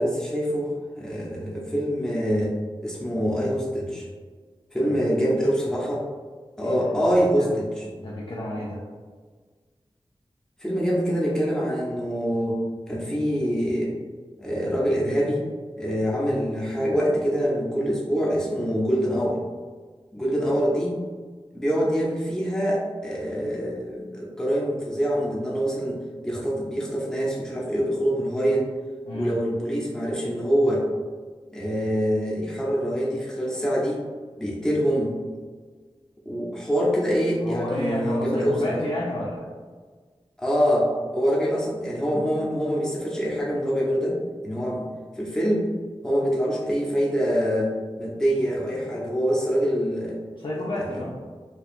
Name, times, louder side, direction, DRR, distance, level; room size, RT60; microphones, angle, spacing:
voice 1, 0.0-2.6 2.8-4.1 4.7-6.1 6.6-7.9 10.6-13.9 14.4-15.4 15.8-19.4 20.1-21.0 21.5-28.7 29.1-30.9 31.5-34.0 34.4-35.2 36.2-38.8 40.4-44.2 44.4-44.9 45.2-45.7 46.0-50.2 50.8-51.0, equal, 5° left, -5 dB, 0.7 m, -25 dB
voice 2, 4.8-5.3 6.6-7.1 7.4-7.6 8.0-8.8 29.1-29.3 37.4-39.4 50.4-51.1, left 1 dB, 60° left, -6 dB, 0.6 m, -31 dB
4.4 x 2.3 x 2.5 m, 1.5 s
wide cardioid pair, 70°, 10 cm